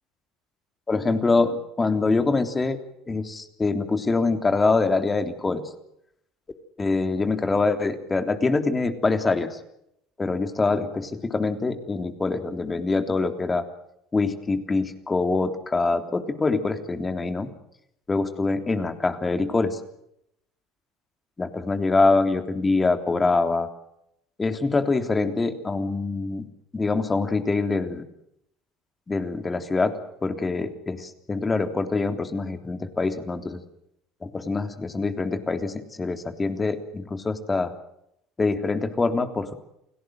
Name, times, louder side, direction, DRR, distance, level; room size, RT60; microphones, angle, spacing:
voice 1, 0.9-2.8 3.1-5.6 6.8-9.5 10.2-13.6 14.1-17.5 18.1-19.8 21.4-23.7 24.4-26.5 26.7-28.0 29.1-29.9 30.2-33.6 34.2-37.7 38.4-39.5, left 3 dB, 25° left, 8 dB, 3.4 m, -24 dB
29.5 x 18.0 x 7.8 m, 0.79 s
hypercardioid pair, 70°, 0 cm